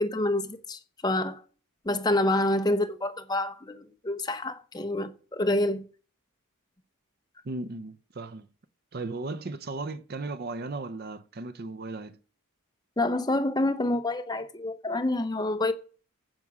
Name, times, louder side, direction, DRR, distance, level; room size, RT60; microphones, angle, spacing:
voice 1, 0.0-1.4 1.8-5.8 13.0-15.7, left 1 dB, 20° left, 0.8 m, -27 dB
voice 2, 7.4-8.5 8.9-12.2, right 3 dB, 45° right, 0.5 m, -36 dB
15.0 x 6.1 x 6.1 m
head